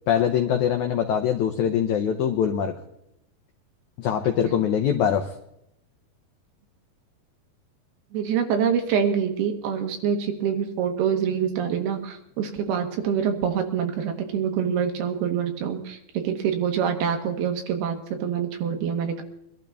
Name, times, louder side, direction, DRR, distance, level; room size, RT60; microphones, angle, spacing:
voice 1, 0.1-2.7 4.0-5.3, left 9 dB, 80° left, 5 dB, 1.7 m, -23 dB
voice 2, 8.1-19.2, right 7 dB, 80° right, 5 dB, 3.1 m, -26 dB
22.5 x 12.0 x 3.5 m, 0.81 s
omnidirectional pair, 4.5 m